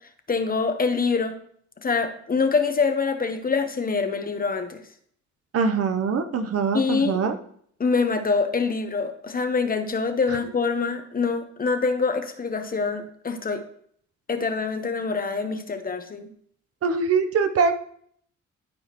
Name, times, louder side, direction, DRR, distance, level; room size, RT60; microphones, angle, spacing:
voice 1, 0.3-1.3 1.8-4.8 6.7-7.2 7.8-13.6 14.3-16.3 17.4-17.5, left 4 dB, 30° left, 7 dB, 0.9 m, -25 dB
voice 2, 5.5-7.4 16.8-17.7, right 5 dB, 50° right, 8 dB, 0.8 m, -23 dB
12.0 x 4.8 x 3.0 m, 0.63 s
cardioid pair, 90°, 30 cm